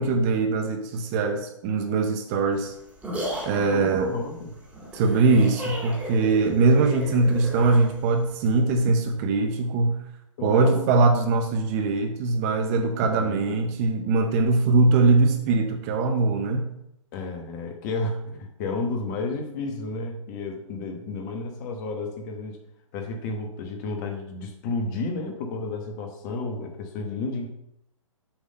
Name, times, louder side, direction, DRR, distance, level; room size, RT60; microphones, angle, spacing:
voice 1, 0.0-2.7 3.5-4.2 4.9-10.0 10.4-16.7, right 3 dB, 30° right, 6 dB, 0.7 m, -22 dB
sound 1, 2.5-8.6, equal, 10° right, 2.1 m, -35 dB
voice 2, 3.6-4.5 6.4-6.6 10.4-10.8 13.2-13.4 17.1-22.6 22.9-27.5, left 3 dB, 35° left, 4 dB, 1.2 m, -32 dB
7.1 x 3.7 x 5.4 m, 0.80 s
figure-of-eight pair, 130°, 17 cm